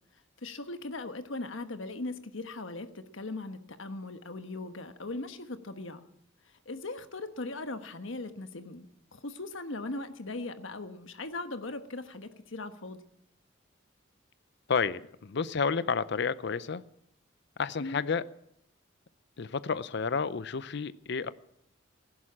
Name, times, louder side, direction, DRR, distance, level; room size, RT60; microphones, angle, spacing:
voice 1, 0.4-6.1 6.7-13.0 17.8-18.0, left 2 dB, 75° left, 1.2 m, -39 dB
voice 2, 14.7-16.8 17.6-18.2 19.4-21.3, left 5 dB, 60° left, 0.6 m, -30 dB
16.0 x 11.0 x 7.3 m
head